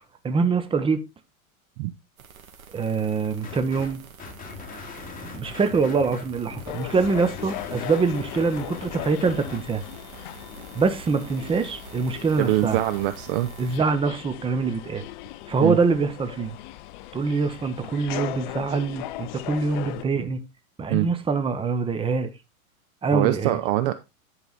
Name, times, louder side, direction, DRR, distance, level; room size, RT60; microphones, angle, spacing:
voice 1, 0.2-1.0 2.7-4.0 5.2-9.8 10.7-12.8 13.6-15.1 15.5-16.6 17.1-20.4 20.8-22.3 23.0-23.6, right 4 dB, 10° right, 1.0 m, -24 dB
sound 1, 2.2-13.8, right 5 dB, 70° right, 2.0 m, -46 dB
sound 2, 3.4-3.9 4.2-9.6, left 5 dB, 20° left, 2.4 m, -40 dB
sound 3, 6.7-20.0, left 16 dB, 35° left, 0.4 m, -38 dB
voice 2, 12.4-13.5 15.6-15.8 20.9-21.1 23.1-23.9, right 15 dB, 40° right, 0.7 m, -23 dB
10.5 x 4.9 x 4.0 m
hypercardioid pair, 100°, 44 cm